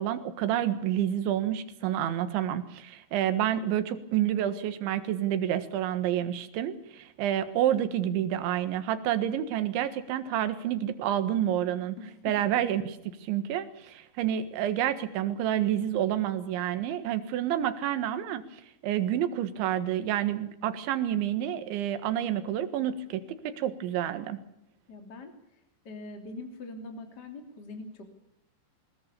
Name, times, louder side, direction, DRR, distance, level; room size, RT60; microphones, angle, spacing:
voice 1, 0.0-12.0 12.3-24.4, right 11 dB, 80° right, 11 dB, 3.9 m, -29 dB
voice 2, 12.0-12.4 24.9-25.6 25.8-28.1, left 2 dB, 25° left, 5 dB, 2.8 m, -43 dB
22.5 x 21.0 x 7.0 m, 0.78 s
omnidirectional pair, 5.4 m